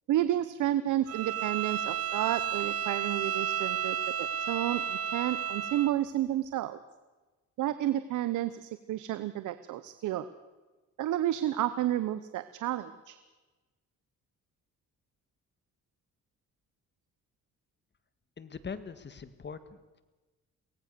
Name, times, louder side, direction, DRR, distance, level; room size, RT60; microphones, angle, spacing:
voice 1, 0.1-6.8 7.6-10.3 11.0-13.2, right 13 dB, 80° right, 13 dB, 0.9 m, -31 dB
Bowed string instrument, 1.1-5.9, right 9 dB, 55° right, 1.4 m, -32 dB
voice 2, 18.4-20.0, left 5 dB, 35° left, 12 dB, 1.8 m, -42 dB
23.5 x 18.0 x 6.8 m, 1.2 s
cardioid pair, 90°, 30 cm